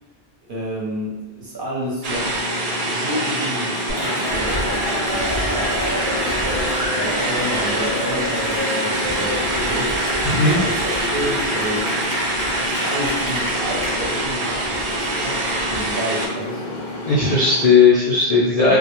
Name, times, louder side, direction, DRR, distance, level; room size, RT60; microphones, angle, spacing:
voice 1, 0.5-2.4 2.9-12.0 12.6-16.8, equal, 55° right, -5 dB, 0.7 m, -30 dB
sound 1, 2.0-17.7, left 2 dB, 90° left, 0.9 m, -31 dB
sound 2, 2.0-16.3, right 2 dB, 80° right, 0.3 m, -26 dB
Cheering / Applause, 3.9-13.9, equal, 5° left, 0.5 m, -27 dB
voice 2, 17.0-18.8, left 4 dB, 60° left, -8 dB, 0.4 m, -16 dB
2.1 x 2.0 x 2.9 m, 1.1 s
omnidirectional pair, 1.2 m